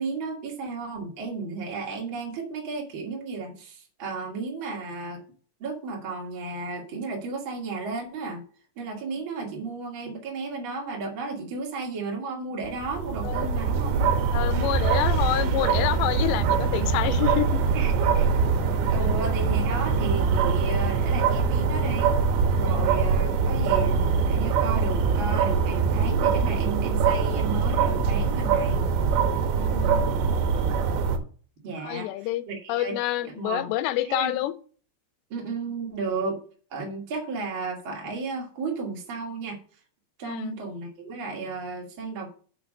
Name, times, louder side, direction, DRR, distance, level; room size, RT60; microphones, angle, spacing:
voice 1, 0.0-5.2 5.6-8.4 8.8-14.2 17.7-18.3 18.9-22.2 22.5-28.8 31.6-32.1 32.5-33.0 33.2-33.7 34.0-34.4 35.3-36.4 36.7-39.6 40.2-42.3, right 4 dB, 35° right, 0 dB, 2.5 m, -33 dB
sound 1, 12.7-31.2, right 5 dB, 85° right, 3.4 m, -23 dB
voice 2, 14.3-17.6 19.0-19.1 22.7-22.9 29.5-30.1 31.8-34.5 40.2-40.6, left 14 dB, 90° left, 13 dB, 2.9 m, -28 dB
7.1 x 5.9 x 6.4 m, 0.41 s
omnidirectional pair, 4.9 m